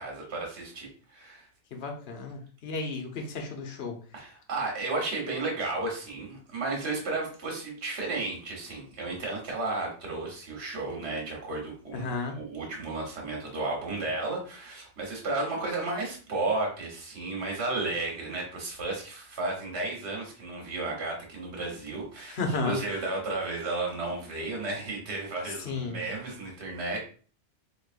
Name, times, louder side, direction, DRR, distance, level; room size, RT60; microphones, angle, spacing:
voice 1, 0.0-1.5 4.1-22.4 22.6-27.0, right 2 dB, 65° right, -1 dB, 1.5 m, -33 dB
voice 2, 1.7-4.0 11.9-12.4 22.3-23.0 25.5-26.0, left 3 dB, 60° left, 3 dB, 1.0 m, -33 dB
4.6 x 3.0 x 2.5 m, 0.41 s
omnidirectional pair, 1.2 m